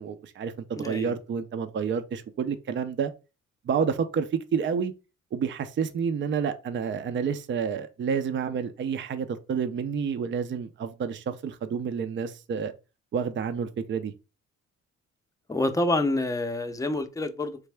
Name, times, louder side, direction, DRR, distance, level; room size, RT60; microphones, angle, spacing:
voice 1, 0.0-3.1 3.6-4.9 5.3-12.7 13.1-14.1, right 6 dB, 40° right, 0.5 m, -29 dB
voice 2, 0.8-1.1 15.5-17.6, left 2 dB, 10° left, 0.6 m, -27 dB
4.0 x 3.3 x 3.4 m
cardioid pair, 90°, 30 cm